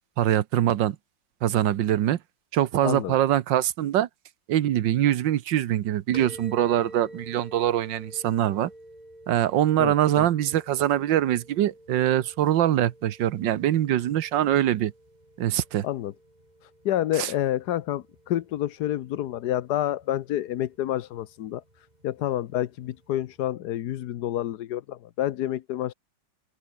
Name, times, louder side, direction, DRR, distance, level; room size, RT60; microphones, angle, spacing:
voice 1, 0.2-1.0 1.4-2.2 2.5-4.1 4.5-8.7 9.3-14.9 15.4-15.9 17.1-17.3, right 12 dB, 70° right, 1.6 m, -23 dB
voice 2, 2.8-3.1 9.8-10.3 15.8-16.1 16.8-21.6 22.0-25.9, left 12 dB, 65° left, 1.2 m, -28 dB
sound 1, 6.1-23.5, right 1 dB, 20° right, 6.8 m, -50 dB
open air
omnidirectional pair, 2.1 m